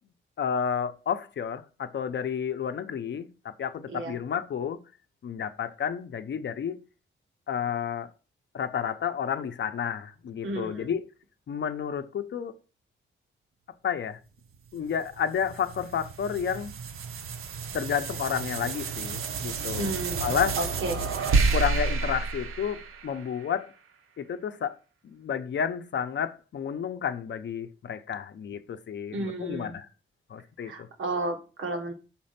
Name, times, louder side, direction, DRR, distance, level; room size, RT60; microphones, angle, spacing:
voice 1, 0.4-4.8 5.2-6.8 7.5-8.1 8.5-11.0 11.5-12.5 13.8-14.2 14.7-16.7 17.7-19.9 20.2-20.6 21.5-23.7 24.2-24.8 25.0-29.9 30.3-30.9, left 7 dB, 60° left, 0.7 m, -31 dB
voice 2, 10.4-10.9 19.8-21.0 29.1-29.7 30.6-31.9, right 2 dB, 70° right, 1.5 m, -33 dB
sound 1, 14.9-23.5, right 4 dB, 90° right, 0.8 m, -30 dB
6.0 x 4.3 x 5.7 m
wide cardioid pair, 140°, 21 cm